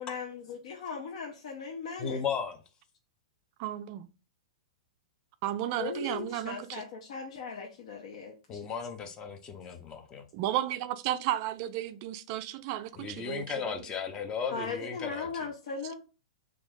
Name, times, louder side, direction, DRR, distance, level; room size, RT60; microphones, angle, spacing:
voice 1, 0.0-2.2 5.7-8.7 14.5-15.9, left 5 dB, 65° left, 0.7 m, -38 dB
voice 2, 2.0-2.6 8.5-10.2 12.9-15.5, left 6 dB, 20° left, 0.6 m, -36 dB
voice 3, 3.6-4.1 5.4-6.8 10.3-13.7, right 13 dB, 40° right, 0.3 m, -33 dB
3.0 x 2.4 x 3.5 m
hypercardioid pair, 140°, 3 cm